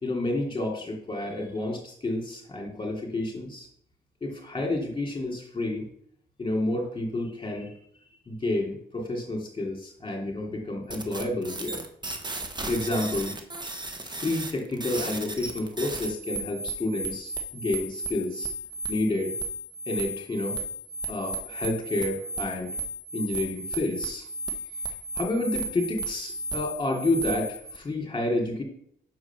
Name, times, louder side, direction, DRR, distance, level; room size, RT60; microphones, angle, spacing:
voice 1, 0.0-3.7 4.2-5.9 6.4-7.7 8.3-11.8 12.7-13.4 14.0-18.5 18.9-19.3 19.9-20.6 21.1-22.8 23.1-24.3 25.1-28.6, left 2 dB, 25° left, 0 dB, 2.8 m, -30 dB
sound 1, 10.9-27.8, right 2 dB, 20° right, 1.2 m, -34 dB
6.4 x 4.8 x 6.0 m, 0.67 s
cardioid pair, 90°, 20 cm